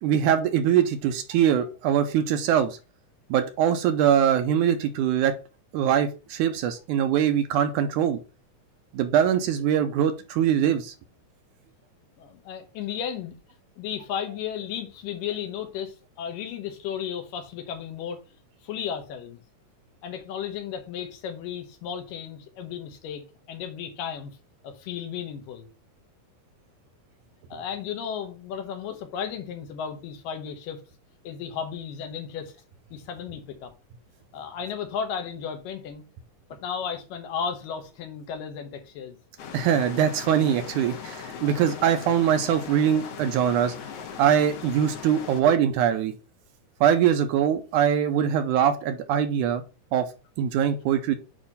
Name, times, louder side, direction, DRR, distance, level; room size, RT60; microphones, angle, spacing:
voice 1, 0.0-2.8 3.3-5.3 5.7-8.2 8.9-10.9 39.5-43.7 44.2-46.1 46.8-49.6 49.9-50.1 50.4-51.2, right 9 dB, 80° right, 2.0 m, -22 dB
voice 2, 12.2-13.4 13.8-18.2 18.6-19.4 20.0-24.4 24.6-25.7 27.5-30.8 31.2-32.5 32.9-33.7 34.3-36.0 36.5-39.2, left 8 dB, 80° left, 2.7 m, -34 dB
sound 1, 39.4-45.4, left 6 dB, 60° left, 1.9 m, -39 dB
8.6 x 3.0 x 5.4 m
omnidirectional pair, 3.9 m